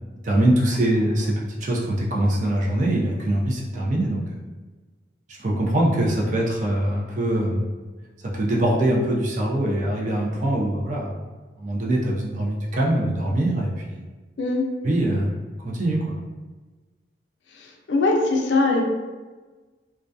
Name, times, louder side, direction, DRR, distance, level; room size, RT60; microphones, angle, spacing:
voice 1, 0.2-4.2 5.3-7.7 8.2-11.1 11.6-14.0 14.8-15.3 15.6-16.1, right 1 dB, 40° right, -3 dB, 0.4 m, -23 dB
voice 2, 17.6-18.8, left 3 dB, 70° left, 0 dB, 0.4 m, -21 dB
2.2 x 2.2 x 2.5 m, 1.3 s
head